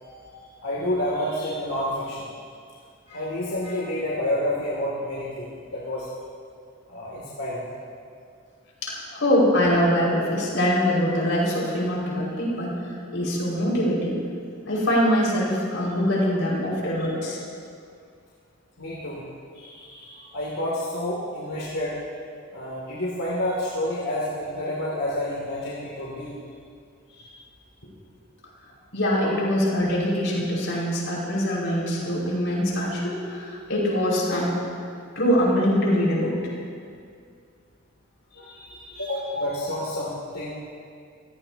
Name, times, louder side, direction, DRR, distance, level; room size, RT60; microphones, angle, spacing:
voice 1, 0.0-2.3 3.1-6.1 6.9-7.7 17.0-17.1 18.8-19.2 19.5-22.0 22.5-26.3 27.1-27.3 32.0-32.1 38.3-40.5, left 1 dB, 75° left, -7 dB, 2.8 m, -29 dB
voice 2, 8.8-14.2 14.7-17.4 28.9-34.6 35.2-36.4 39.3-39.5, equal, 60° left, -4 dB, 5.5 m, -23 dB
28.0 x 17.0 x 2.9 m, 2.3 s
head